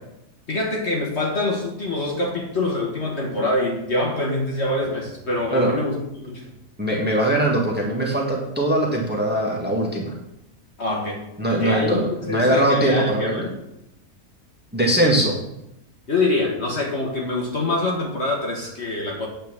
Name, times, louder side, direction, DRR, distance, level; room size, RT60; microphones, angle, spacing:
voice 1, 0.5-6.4 10.8-11.2 11.6-13.5 16.1-19.3, left 2 dB, 45° left, -1 dB, 1.9 m, -25 dB
voice 2, 6.8-10.1 11.4-13.4 14.7-15.4, right 1 dB, 5° right, -2 dB, 1.7 m, -21 dB
9.0 x 4.5 x 7.3 m, 0.86 s
omnidirectional pair, 1.6 m